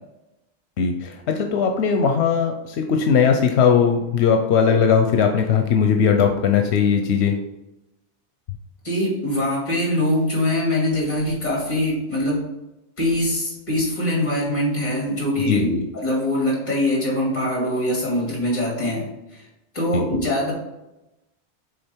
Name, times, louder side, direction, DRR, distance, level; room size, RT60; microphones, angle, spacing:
voice 1, 0.8-7.4 15.5-15.8 19.9-20.0, left 6 dB, 90° left, 4 dB, 0.9 m, -19 dB
voice 2, 8.8-12.4 13.0-19.5 19.7-20.5, left 1 dB, 45° left, -4 dB, 2.7 m, -23 dB
6.5 x 4.0 x 4.4 m, 0.94 s
omnidirectional pair, 1.1 m